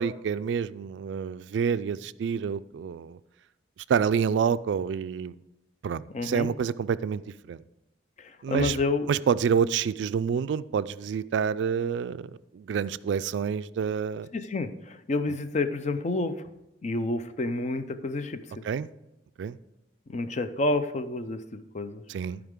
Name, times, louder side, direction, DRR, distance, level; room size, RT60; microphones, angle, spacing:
voice 1, 0.0-3.2 3.9-5.3 5.8-7.2 7.5-7.6 8.4-8.8 9.1-14.3 18.6-18.9 19.4-19.6 22.1-22.4, right 7 dB, 70° right, 15 dB, 0.3 m, -28 dB
voice 2, 6.1-6.5 8.2-9.1 14.3-16.3 16.8-18.6 20.1-22.0, left 2 dB, 40° left, 11 dB, 0.5 m, -29 dB
14.5 x 4.9 x 3.7 m, 0.92 s
head